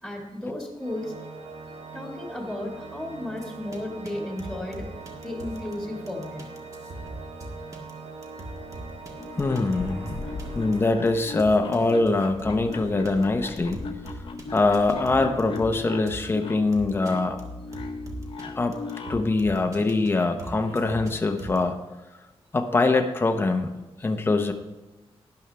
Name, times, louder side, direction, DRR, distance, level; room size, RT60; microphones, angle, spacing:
voice 1, 0.0-1.1 1.9-4.9 5.2-6.4, left 1 dB, ahead, -1 dB, 1.9 m, -34 dB
Organ, 0.8-11.7, right 4 dB, 75° right, 1.0 m, -42 dB
sound 1, 3.4-3.8 4.1-4.2 4.4-5.7 6.1-12.7 13.1-13.2 13.6-15.8 16.1-16.3 16.7-17.1 17.4-17.5 17.7-18.4 18.7-20.1 20.4-21.6, right 1 dB, 30° right, 1.7 m, -41 dB
sound 2, 9.1-19.3, left 4 dB, 55° left, 0.9 m, -38 dB
voice 2, 9.4-10.2 10.5-13.8 14.5-17.4 18.6-18.8 19.1-21.8 22.5-23.7 24.0-24.5, left 3 dB, 20° left, 6 dB, 0.8 m, -23 dB
12.5 x 10.5 x 3.4 m, 1.1 s
wide cardioid pair, 175°, 11 cm